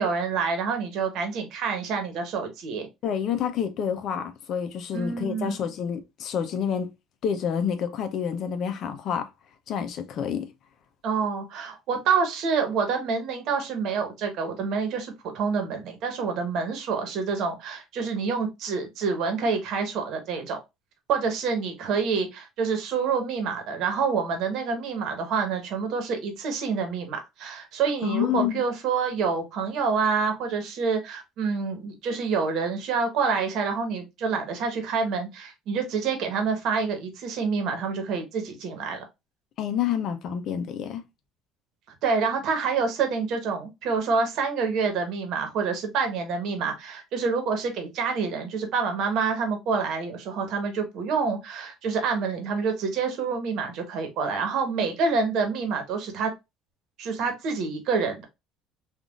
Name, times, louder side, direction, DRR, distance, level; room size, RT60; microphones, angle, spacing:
voice 1, 0.0-2.9 4.9-5.6 11.0-20.6 21.1-39.0 42.0-56.3 57.0-58.2, right 5 dB, 65° right, 1.1 m, -27 dB
voice 2, 3.0-6.9 7.2-9.3 9.7-10.5 28.0-28.6 39.6-41.0, left 8 dB, 55° left, 0.6 m, -28 dB
3.6 x 2.5 x 2.4 m
cardioid pair, 120°, 0 cm